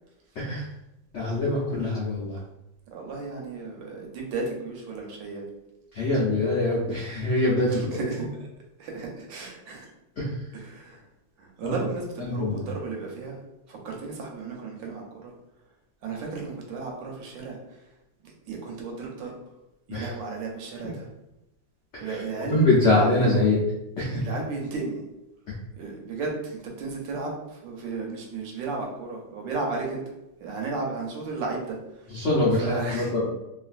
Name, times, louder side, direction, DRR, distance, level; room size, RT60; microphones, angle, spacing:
voice 1, 0.3-0.7 1.1-2.4 5.9-8.1 10.2-10.5 11.6-11.8 12.2-12.7 19.9-20.1 20.8-20.9 21.9-22.2 22.5-23.6 24.0-24.2 25.5-25.6 32.1-33.3, left 2 dB, 90° left, -5 dB, 0.6 m, -24 dB
voice 2, 2.9-5.4 7.8-8.5 8.8-9.9 10.5-11.0 11.4-13.4 13.7-15.3 16.0-17.8 18.2-19.4 19.9-21.1 22.0-23.1 24.2-25.0 25.8-30.0 30.4-32.3 32.6-33.1, right 3 dB, 80° right, 0 dB, 1.4 m, -34 dB
3.1 x 2.4 x 2.5 m, 0.90 s
omnidirectional pair, 2.0 m